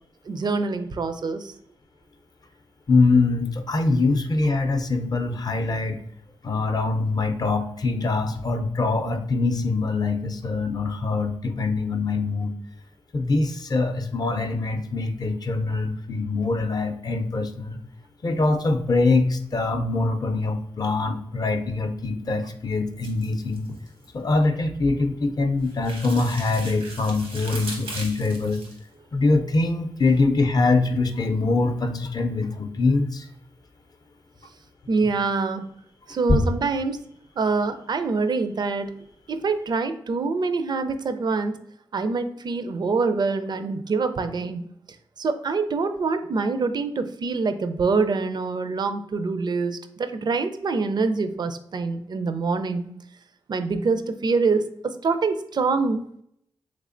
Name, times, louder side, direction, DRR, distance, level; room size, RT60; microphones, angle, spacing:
voice 1, 0.3-1.5 34.9-35.6 36.1-37.0 37.4-38.9 39.3-41.6 41.9-44.7 45.2-52.9 53.5-56.2, right 4 dB, 50° right, 10 dB, 0.4 m, -25 dB
voice 2, 2.9-6.0 6.4-12.5 13.1-17.8 18.2-23.7 24.1-28.6 29.1-33.3 36.3-36.4, left 3 dB, 45° left, 7 dB, 0.5 m, -23 dB
sound 1, 23.0-24.1 25.6-28.8, right 2 dB, 90° right, 1.0 m, -38 dB
3.4 x 3.2 x 2.5 m, 0.72 s
cardioid pair, 60°, 10 cm